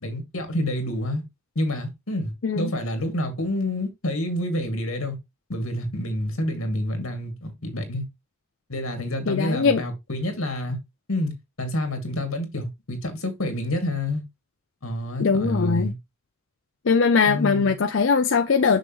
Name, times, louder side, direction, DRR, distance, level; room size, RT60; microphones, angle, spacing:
voice 1, 0.0-1.2 1.6-5.2 5.5-8.0 8.7-10.8 11.1-14.2 14.8-15.9 17.3-17.7, left 1 dB, 90° left, 2.3 m, -28 dB
voice 2, 9.3-9.8 15.2-15.9 16.8-18.8, left 5 dB, 65° left, 0.5 m, -21 dB
6.4 x 6.3 x 3.1 m
head